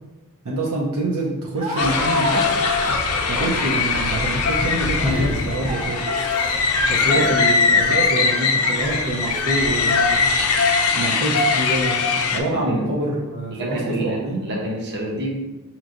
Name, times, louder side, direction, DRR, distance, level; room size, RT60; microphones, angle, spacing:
voice 1, 0.4-2.5 3.3-6.0 6.9-10.2 11.0-14.4, right 2 dB, 75° right, -4 dB, 0.7 m, -26 dB
Laughter, 1.5-9.8, right 2 dB, 25° right, 0.6 m, -33 dB
sound 1, 1.8-12.4, left 4 dB, 85° left, 0.5 m, -20 dB
voice 2, 12.5-12.9 13.5-15.3, right 1 dB, 55° right, -2 dB, 0.9 m, -28 dB
5.4 x 3.0 x 2.5 m, 1.1 s
head